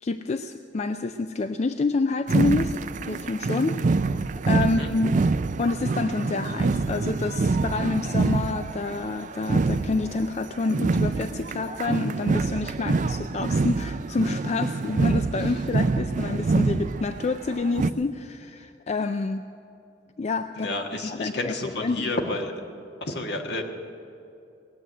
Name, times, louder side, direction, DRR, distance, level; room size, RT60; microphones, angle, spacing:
voice 1, 0.0-2.7 3.0-4.2 4.5-5.1 5.6-19.5 20.2-20.7 21.0-22.1, left 3 dB, 40° left, 9 dB, 0.4 m, -28 dB
sound 1, 2.3-17.9, right 3 dB, 45° right, 0.4 m, -26 dB
voice 2, 20.6-22.5 23.0-23.6, left 2 dB, 65° left, 3 dB, 1.5 m, -30 dB
18.5 x 7.7 x 9.9 m, 2.7 s
head